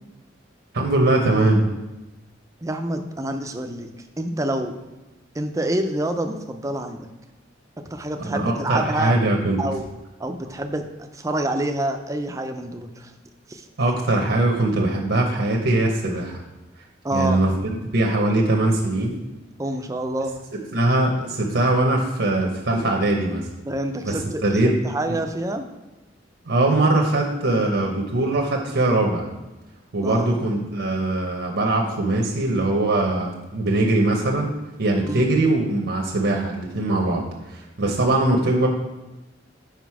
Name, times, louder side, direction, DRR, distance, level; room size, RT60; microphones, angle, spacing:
voice 1, 0.7-1.6 8.2-9.6 13.8-16.4 17.1-19.2 20.7-23.5 24.0-24.8 25.1-25.2 26.5-29.3 29.9-34.5 34.8-38.7, right 2 dB, 70° right, 1 dB, 0.9 m, -21 dB
voice 2, 2.6-3.9 4.2-4.7 5.3-7.1 7.9-9.2 9.6-9.9 10.2-10.8 11.1-13.1 13.5-13.6 17.0-17.4 19.6-20.4 23.7-25.7 30.0-30.4 35.0-35.3, right 1 dB, 15° right, 6 dB, 0.5 m, -27 dB
6.0 x 5.1 x 4.7 m, 1.1 s
head